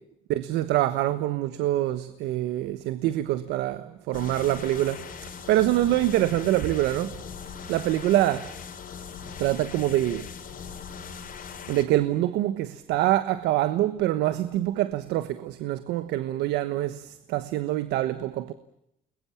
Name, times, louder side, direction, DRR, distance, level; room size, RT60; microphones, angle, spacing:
voice 1, 0.3-5.1 5.5-7.2 7.7-8.4 9.4-10.3 11.7-18.5, right 14 dB, 90° right, 1.3 m, -25 dB
sound 1, 4.1-11.8, left 6 dB, 55° left, 4.5 m, -40 dB
29.5 x 21.5 x 8.8 m
cardioid pair, 110°, 17 cm